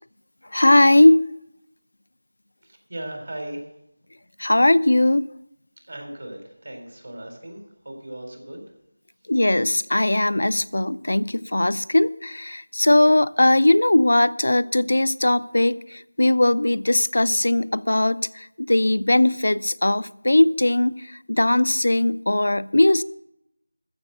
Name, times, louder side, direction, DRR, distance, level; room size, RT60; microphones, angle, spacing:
voice 1, 0.5-1.2 4.4-5.3 9.3-21.0 21.3-23.0, left 1 dB, 75° left, 0.5 m, -19 dB
voice 2, 2.9-3.7 5.9-8.6, right 1 dB, 60° right, 3.8 m, -37 dB
14.0 x 6.7 x 7.8 m
figure-of-eight pair, 175°, 0 cm